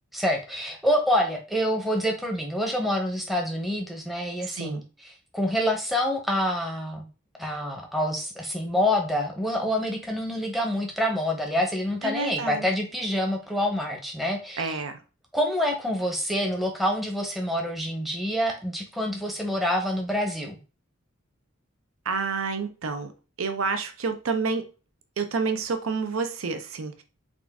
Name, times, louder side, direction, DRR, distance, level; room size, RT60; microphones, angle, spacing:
voice 1, 0.1-7.1 7.4-14.8 15.3-20.6, equal, ahead, 1 dB, 0.7 m, -27 dB
voice 2, 4.5-4.8 12.0-12.7 14.6-15.0 22.1-23.1 23.4-24.6 25.2-27.0, right 4 dB, 75° right, 8 dB, 0.6 m, -29 dB
3.7 x 2.5 x 3.4 m, 0.33 s
head